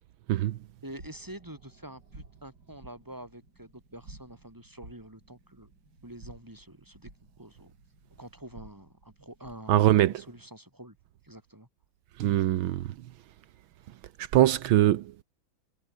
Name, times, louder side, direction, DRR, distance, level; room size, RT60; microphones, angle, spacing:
voice 1, 0.8-5.7 6.0-7.7 8.2-11.0 11.2-11.7, right 1 dB, 10° right, 5.1 m, -47 dB
sound 1, 0.9-9.8, right 2 dB, 55° right, 8.0 m, -53 dB
voice 2, 9.7-10.1 12.2-12.8 14.3-15.0, right 13 dB, 80° right, 1.6 m, -22 dB
omnidirectional pair, 2.2 m